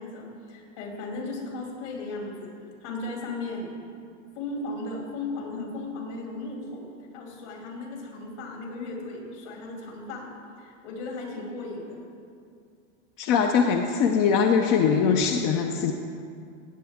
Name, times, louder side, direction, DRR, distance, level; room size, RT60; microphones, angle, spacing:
voice 1, 0.0-2.5 2.8-3.7 4.3-6.9 7.1-10.3 10.6-12.0, left 2 dB, 65° left, 0 dB, 2.9 m, -36 dB
voice 2, 13.2-15.9, left 6 dB, 40° left, 4 dB, 0.6 m, -22 dB
16.0 x 8.3 x 3.6 m, 2.3 s
supercardioid pair, 135°, 38 cm